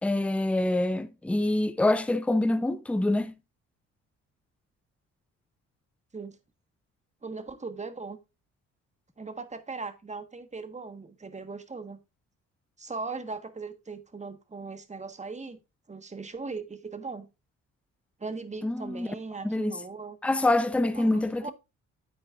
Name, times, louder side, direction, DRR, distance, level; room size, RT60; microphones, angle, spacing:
voice 1, 0.0-3.3 18.6-19.1 19.4-19.8 20.2-21.5, left 2 dB, 5° left, 0.6 m, -26 dB
voice 2, 7.2-8.2 9.2-12.0 12.8-15.6 15.9-17.3 18.2-20.2 20.9-21.5, right 4 dB, 25° right, 1.3 m, -39 dB
9.3 x 8.5 x 2.4 m
cardioid pair, 90°, 30 cm